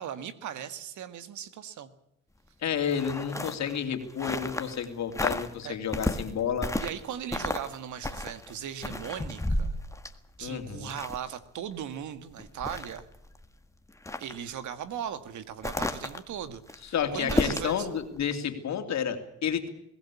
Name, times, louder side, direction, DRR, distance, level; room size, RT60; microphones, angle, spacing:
voice 1, 0.0-1.9 5.6-5.8 6.8-9.8 10.4-13.1 14.2-17.9, right 9 dB, 75° right, 11 dB, 1.9 m, -38 dB
voice 2, 2.6-6.7 10.4-11.0 16.9-19.7, left 8 dB, 65° left, 7 dB, 3.1 m, -31 dB
sound 1, 2.8-4.9 5.1-5.5 5.9-7.0 7.3-7.7 8.0-11.4 11.8-11.9 12.3-13.4 13.9-14.4 15.6-17.8 18.2-18.3, left 1 dB, 10° left, 1.8 m, -32 dB
22.0 x 17.0 x 8.5 m, 0.79 s
cardioid pair, 90°, 30 cm